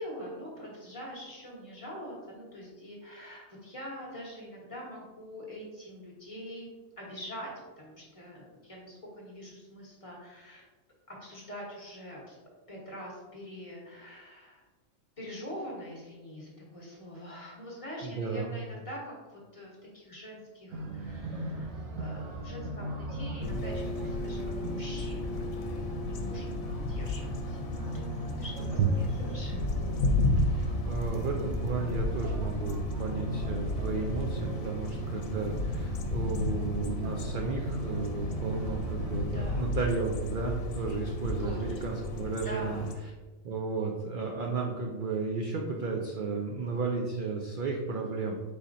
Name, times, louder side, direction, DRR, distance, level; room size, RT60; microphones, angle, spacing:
voice 1, 0.0-7.5 7.8-10.6 11.1-12.4 12.7-14.6 15.2-21.7 22.0-27.6 27.9-28.0 28.4-29.7 39.3-39.7 41.4-41.6 42.4-42.9 47.9-48.4, equal, 30° left, -4 dB, 1.0 m, -44 dB
voice 2, 18.0-18.5 28.8-28.9 30.4-42.8 43.4-48.4, right 4 dB, 65° right, 0 dB, 0.5 m, -33 dB
sound 1, 20.7-39.3, right 2 dB, 90° right, 1.1 m, -38 dB
sound 2, 23.4-42.9, left 2 dB, 85° left, 1.0 m, -33 dB
4.9 x 4.2 x 2.5 m, 1.3 s
omnidirectional pair, 1.4 m